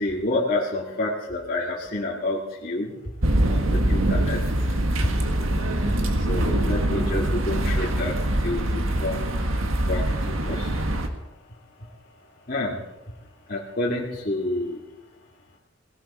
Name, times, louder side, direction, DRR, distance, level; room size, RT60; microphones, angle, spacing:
voice 1, 0.0-2.9 3.5-4.4 4.6-4.7 5.0-5.1 5.6-5.7 6.3-9.4 9.9-10.0 10.4-10.9 12.5-12.8 13.5-14.8, left 2 dB, 45° left, -4 dB, 2.1 m, -28 dB
sound 1, 3.2-11.1, right 1 dB, 80° right, 1.6 m, -24 dB
18.0 x 17.0 x 4.3 m, 1.0 s
head